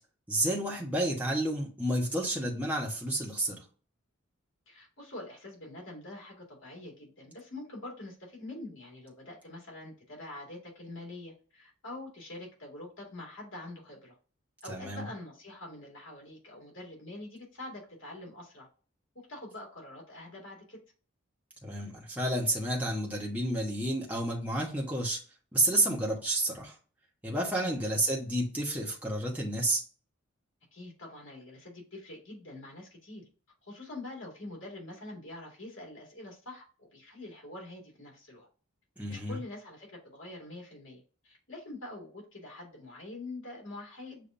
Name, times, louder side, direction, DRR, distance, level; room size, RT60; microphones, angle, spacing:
voice 1, 0.3-3.6 14.7-15.0 21.6-25.2 25.5-26.7 27.2-29.8 39.0-39.4, right 1 dB, 5° right, -3 dB, 1.0 m, -30 dB
voice 2, 4.7-14.1 14.6-18.7 19.3-20.8 27.6-27.8 30.7-33.2 33.6-38.5 39.1-44.3, left 2 dB, 70° left, -2 dB, 2.2 m, -45 dB
6.7 x 2.6 x 2.6 m, 0.38 s
head